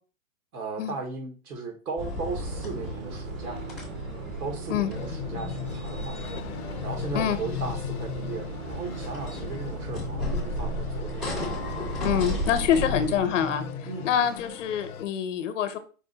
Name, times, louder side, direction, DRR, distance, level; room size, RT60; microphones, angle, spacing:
voice 1, 0.5-3.6 4.4-6.3 6.8-11.5 13.9-14.1, right 4 dB, 85° right, 1.5 m, -36 dB
sound 1, 2.0-13.2, left 1 dB, ahead, 0.4 m, -34 dB
sound 2, 2.4-14.4, right 5 dB, 60° right, 0.8 m, -40 dB
sound 3, 4.9-15.0, left 11 dB, 85° left, 0.7 m, -38 dB
voice 2, 12.0-13.7 14.0-15.8, left 9 dB, 55° left, 0.8 m, -25 dB
4.8 x 2.1 x 3.9 m
hypercardioid pair, 150°, 43 cm